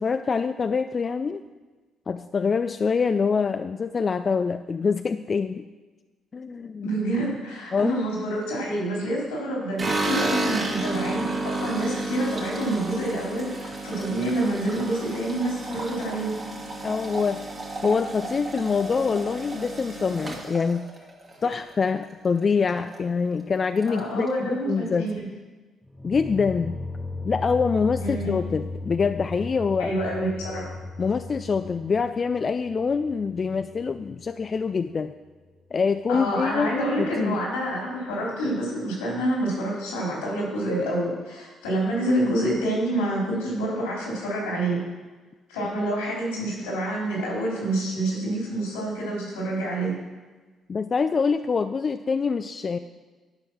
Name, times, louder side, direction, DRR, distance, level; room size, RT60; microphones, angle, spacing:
voice 1, 0.0-1.4 2.1-5.7 6.3-6.9 7.7-8.0 16.8-17.5 17.8-20.9 21.4-25.1 26.0-26.8 27.2-30.0 31.0-35.1 35.7-37.4 50.7-52.8, left 5 dB, 45° left, 9 dB, 0.4 m, -25 dB
voice 2, 6.8-16.3 23.9-25.3 28.0-28.3 29.8-30.8 36.1-44.8 45.5-49.9, right 1 dB, 90° left, -3 dB, 3.4 m, -27 dB
sound 1, 9.8-22.0 22.4-23.0 23.2-23.3 23.6-24.4, right 2 dB, 40° right, 2.4 m, -32 dB
sound 2, 25.9-34.8, left 2 dB, 10° left, 1.0 m, -37 dB
10.5 x 5.3 x 6.1 m, 1.3 s
hypercardioid pair, 50°, 0 cm